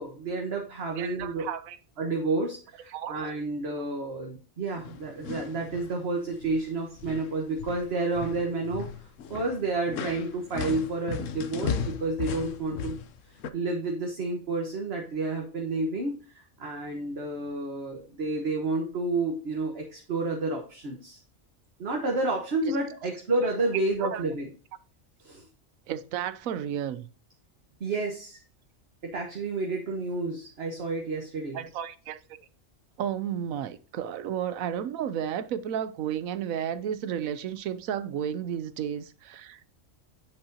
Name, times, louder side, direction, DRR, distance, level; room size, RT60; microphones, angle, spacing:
voice 1, 0.0-1.5 2.0-8.9 9.3-13.0 13.5-21.2 21.8-24.5 25.2-25.5 27.8-28.4 29.0-31.6, right 3 dB, 50° right, 1.4 m, -30 dB
voice 2, 1.0-1.8 2.9-3.2 22.6-22.8 23.4-23.5 24.0-24.2 25.9-27.1 31.5-32.2 33.0-39.7, right 9 dB, 85° right, 1.1 m, -32 dB
sound 1, 4.8-5.9 6.3-6.7 7.0-13.5, left 7 dB, 70° left, 1.0 m, -36 dB
8.1 x 6.7 x 2.8 m
omnidirectional pair, 1.4 m